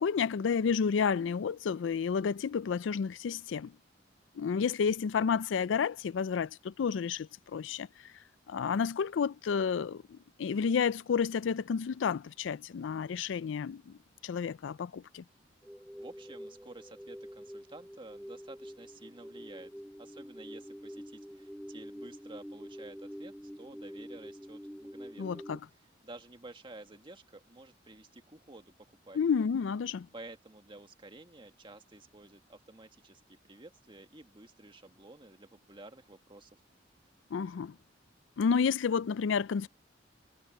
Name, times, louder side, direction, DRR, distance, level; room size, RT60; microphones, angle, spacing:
voice 1, 0.0-3.8 4.4-8.1 8.5-15.2 25.2-25.6 29.1-30.1 37.3-37.8 38.4-39.7, left 6 dB, 85° left, 0.4 m, -31 dB
sound 1, 15.6-25.6, equal, ahead, 2.3 m, -46 dB
voice 2, 16.0-19.7 20.0-25.4 26.0-28.7 29.1-29.2 30.1-36.6, right 2 dB, 25° right, 1.8 m, -51 dB
head